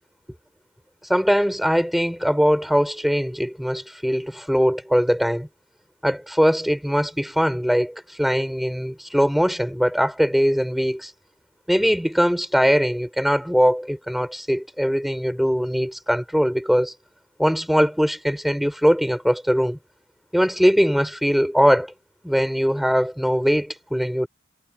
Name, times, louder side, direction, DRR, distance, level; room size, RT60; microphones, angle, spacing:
voice 1, 1.1-5.5 6.0-11.1 11.7-16.9 17.4-19.8 20.3-21.9 22.2-24.3, equal, ahead, 5.5 m, -21 dB
head